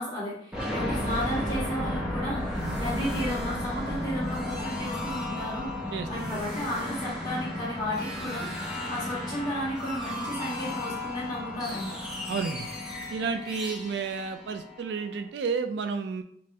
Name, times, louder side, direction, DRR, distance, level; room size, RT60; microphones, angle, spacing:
voice 1, 0.0-11.9, equal, 25° left, -7 dB, 1.3 m, -34 dB
sound 1, 0.5-15.2, left 1 dB, 5° right, 0.6 m, -34 dB
voice 2, 5.9-6.3 12.3-12.7 13.1-16.2, right 5 dB, 70° right, 7 dB, 0.3 m, -31 dB
5.3 x 2.0 x 2.7 m, 0.66 s
head